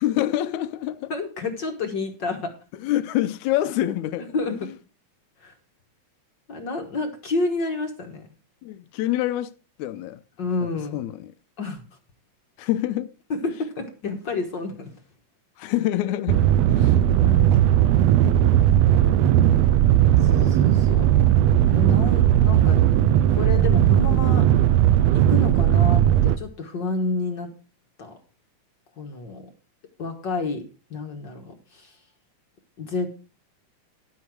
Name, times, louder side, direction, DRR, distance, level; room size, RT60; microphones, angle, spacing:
voice 1, 0.0-1.1 2.8-4.7 8.6-9.5 9.8-10.2 10.9-11.3 12.6-13.1 15.6-17.0, left 14 dB, 80° left, 2.0 m, -26 dB
voice 2, 1.1-2.5 4.3-4.8 5.4-5.5 6.5-8.3 10.4-11.0 11.6-11.8 13.3-14.9 17.2-17.9 20.2-21.1 21.6-22.8 23.4-24.4 25.1-27.5 28.0-28.1 29.0-29.5 30.0-30.6 30.9-31.9 32.8-33.2, left 3 dB, 50° left, 1.5 m, -29 dB
sound 1, 16.3-26.4, right 11 dB, 75° right, 1.6 m, -17 dB
11.5 x 8.5 x 4.6 m
omnidirectional pair, 3.5 m